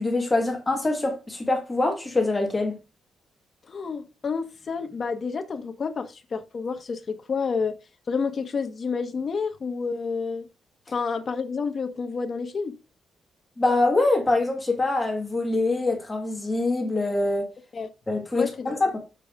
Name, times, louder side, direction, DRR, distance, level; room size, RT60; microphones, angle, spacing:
voice 1, 0.0-2.8 13.6-17.5 18.1-19.0, left 2 dB, 15° left, 1.7 m, -24 dB
voice 2, 3.7-7.7 8.1-10.5 10.9-12.8 17.7-17.9 18.3-18.7, left 5 dB, 35° left, 1.0 m, -29 dB
6.9 x 4.6 x 3.5 m
cardioid pair, 160°, 0 cm